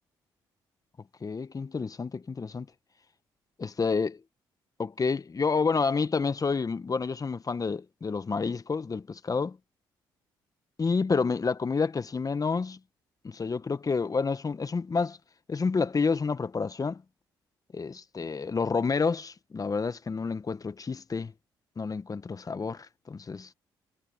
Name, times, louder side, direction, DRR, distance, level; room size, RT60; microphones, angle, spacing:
voice 1, 1.2-2.7 3.6-4.2 4.8-9.6 10.8-12.8 13.2-15.2 15.5-17.0 17.7-21.3 21.8-23.5, left 4 dB, 35° left, 1.4 m, -29 dB
hypercardioid pair, 50°, 10 cm